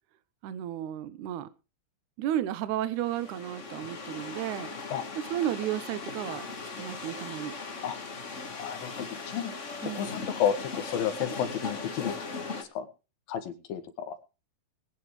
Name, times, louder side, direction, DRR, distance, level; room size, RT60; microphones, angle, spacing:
voice 1, 0.4-1.5 2.2-4.8 5.2-6.5 6.8-7.6 9.8-10.2, right 11 dB, 70° right, 2.1 m, -33 dB
sound 1, 3.0-12.6, left 4 dB, 55° left, 0.8 m, -38 dB
voice 2, 8.6-9.5 9.9-12.2 12.6-12.9 13.3-14.1, left 9 dB, 80° left, 3.2 m, -32 dB
21.5 x 9.0 x 3.2 m
omnidirectional pair, 4.1 m